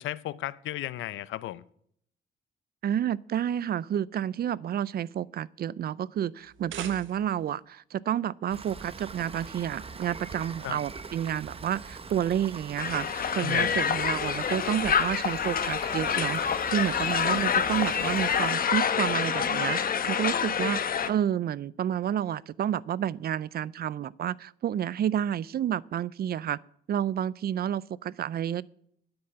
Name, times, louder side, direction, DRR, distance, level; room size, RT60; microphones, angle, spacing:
voice 1, 0.0-1.6 10.6-10.8 13.4-13.8, left 14 dB, 80° left, 0.6 m, -35 dB
voice 2, 2.8-20.8 21.1-26.6 26.9-28.6, right 10 dB, 50° right, 0.5 m, -30 dB
sound 1, 6.4-7.5, right 9 dB, 80° right, 1.1 m, -42 dB
Rain, 8.5-18.6, right 4 dB, 30° right, 0.9 m, -43 dB
Crowd, 12.8-21.1, left 7 dB, 45° left, 0.9 m, -27 dB
9.7 x 9.6 x 7.9 m
cardioid pair, 90°, 20 cm